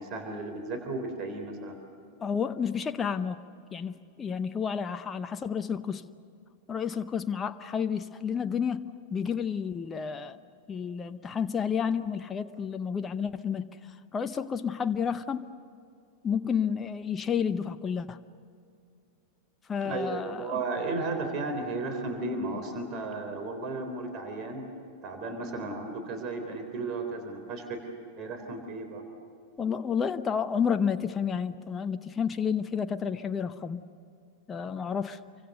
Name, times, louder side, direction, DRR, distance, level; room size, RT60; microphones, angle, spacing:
voice 1, 0.0-1.8 19.8-24.7 25.0-27.8 28.2-29.0, right 3 dB, 35° right, 6 dB, 3.7 m, -34 dB
voice 2, 2.2-3.4 3.7-6.0 6.7-8.8 9.1-10.4 10.7-15.5 16.2-18.2 19.7-20.6 29.6-33.8 34.5-35.2, left 7 dB, 20° left, 9 dB, 0.8 m, -30 dB
28.0 x 24.5 x 6.7 m, 2.5 s
figure-of-eight pair, 90°, 0 cm